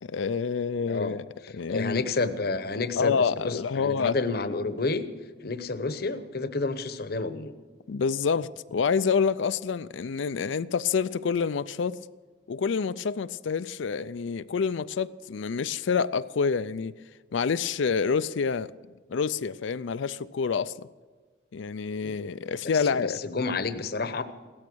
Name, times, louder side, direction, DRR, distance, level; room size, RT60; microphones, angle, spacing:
voice 1, 0.0-1.2 1.5-2.0 3.0-4.1 7.9-12.0 12.5-16.9 17.3-18.7 19.1-20.9 21.5-23.2, left 5 dB, 70° left, 0.4 m, -27 dB
voice 2, 1.7-5.0 5.4-7.5 22.0-22.2 22.6-24.2, left 3 dB, 50° left, 0.9 m, -30 dB
16.5 x 13.5 x 6.2 m
head